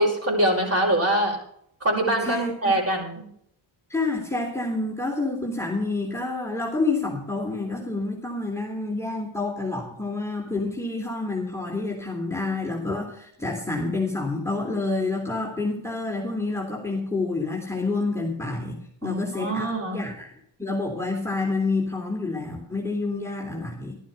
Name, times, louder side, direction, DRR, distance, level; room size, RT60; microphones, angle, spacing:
voice 1, 0.0-1.4 1.8-3.3 19.0-20.0, right 1 dB, 30° right, 0 dB, 6.2 m, -24 dB
voice 2, 2.2-2.7 3.9-20.3 20.6-24.0, left 3 dB, 5° left, -1 dB, 3.4 m, -28 dB
13.0 x 11.5 x 5.4 m, 0.68 s
cardioid pair, 75°, 49 cm